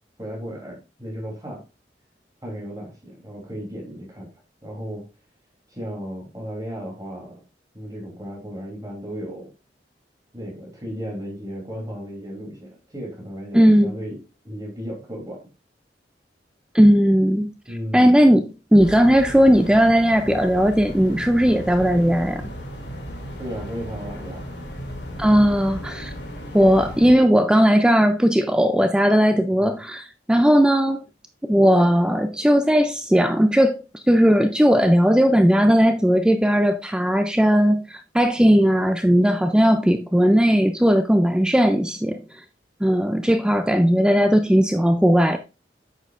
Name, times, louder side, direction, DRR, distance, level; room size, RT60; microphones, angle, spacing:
voice 1, 0.2-1.6 2.4-4.3 4.6-5.0 5.7-7.4 7.7-9.4 10.3-14.2 14.4-15.4 17.7-18.2 23.4-24.4 29.5-29.8, equal, 20° right, 3.0 m, -34 dB
voice 2, 13.5-13.9 16.7-17.5 17.9-22.4 25.2-26.1 26.5-31.1 31.4-42.4 42.8-45.4, equal, 5° right, 0.4 m, -17 dB
sound 1, 18.8-27.1, equal, 75° left, 2.4 m, -35 dB
9.0 x 6.3 x 2.5 m
head